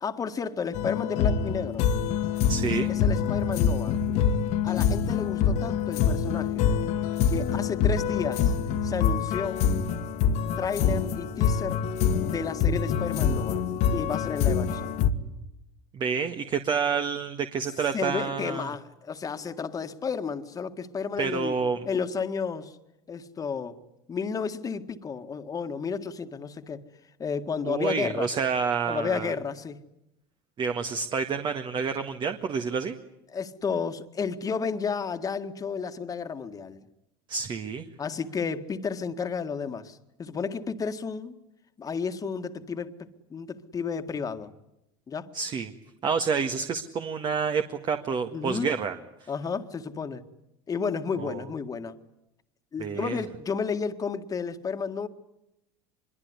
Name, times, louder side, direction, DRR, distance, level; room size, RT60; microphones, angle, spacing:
voice 1, 0.0-1.8 2.9-4.0 4.6-6.7 7.3-8.5 8.8-9.6 10.6-11.8 12.2-13.6 13.9-15.0 17.9-21.6 21.8-22.8 23.1-23.8 24.1-26.8 27.2-28.4 28.9-29.8 33.3-36.8 38.0-41.4 41.8-44.5 45.1-45.3 48.3-48.7 49.3-50.2 50.7-52.0 52.7-55.1, left 5 dB, 30° left, 9 dB, 1.9 m, -32 dB
sound 1, 0.7-15.1, left 7 dB, 65° left, 1.9 m, -25 dB
voice 2, 2.5-2.9 15.9-18.7 21.2-21.8 27.7-29.3 30.6-33.0 37.3-37.9 45.3-45.7 46.0-49.0 49.2-49.3 51.2-51.4 52.8-53.2, right 6 dB, 40° right, 7 dB, 1.8 m, -28 dB
25.0 x 23.0 x 9.8 m, 0.87 s
supercardioid pair, 105°, 13 cm